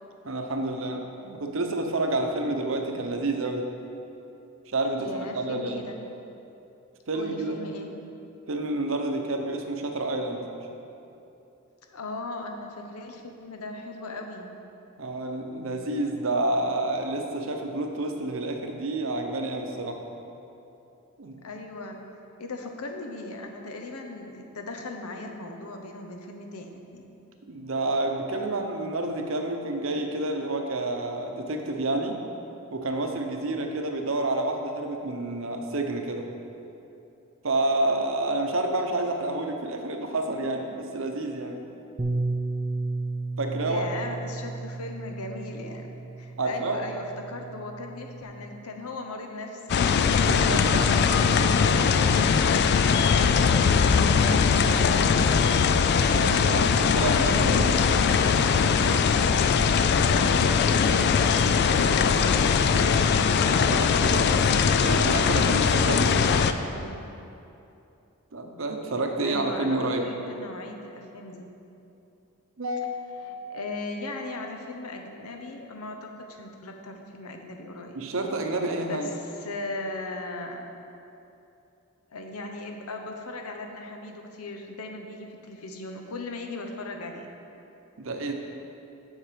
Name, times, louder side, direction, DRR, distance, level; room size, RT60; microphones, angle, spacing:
voice 1, 0.2-3.7 4.7-5.8 7.1-7.6 8.5-10.4 15.0-20.0 21.2-21.4 27.5-32.2 32.7-36.3 37.4-41.6 43.4-43.8 46.4-46.8 50.1-51.0 56.1-57.7 63.6-64.4 64.7-66.5 68.3-70.0 72.6-73.1 77.9-79.1 88.0-88.3, right 2 dB, 60° right, 4 dB, 0.8 m, -29 dB
voice 2, 5.0-6.0 7.1-7.9 11.8-14.6 21.4-22.0 22.4-27.1 43.6-49.9 51.3-52.1 52.4-52.8 53.2-55.6 56.9-59.2 60.2-63.1 66.7-67.1 69.2-71.5 73.5-78.0 78.7-80.6 82.1-87.3, left 2 dB, 90° left, 4 dB, 0.8 m, -38 dB
Bass guitar, 42.0-48.2, right 3 dB, 20° right, 0.4 m, -33 dB
sound 1, 49.7-66.5, left 6 dB, 50° left, 0.3 m, -21 dB
7.4 x 6.6 x 5.0 m, 2.8 s
head